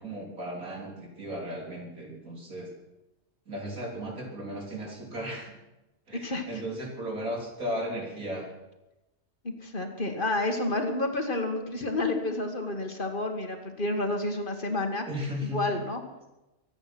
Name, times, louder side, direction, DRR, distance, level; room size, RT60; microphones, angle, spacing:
voice 1, 0.0-2.7 3.5-5.5 6.1-8.5 15.1-15.8, equal, 90° right, -1 dB, 4.2 m, -35 dB
voice 2, 6.2-6.6 9.4-15.1 15.5-16.0, left 2 dB, 35° left, 4 dB, 1.9 m, -30 dB
24.0 x 9.1 x 6.1 m, 0.98 s
omnidirectional pair, 1.5 m